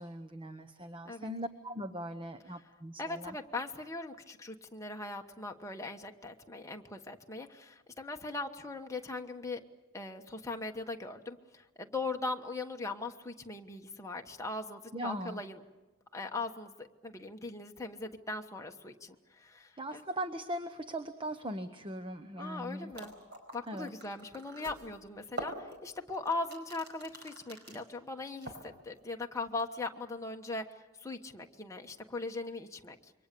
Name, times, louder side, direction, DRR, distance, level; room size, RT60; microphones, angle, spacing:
voice 1, 0.0-3.4 14.9-15.4 19.8-22.9 23.7-23.9, right 1 dB, 25° right, 9 dB, 0.9 m, -40 dB
voice 2, 3.0-9.6 9.9-15.6 16.1-20.0 22.4-23.1 23.5-33.1, left 3 dB, 15° left, 2 dB, 1.2 m, -40 dB
sound 1, 22.6-22.7 22.9-27.8 28.2-29.0 29.4-29.7, right 1 dB, 50° right, 4.9 m, -45 dB
27.5 x 23.5 x 6.9 m, 1.2 s
head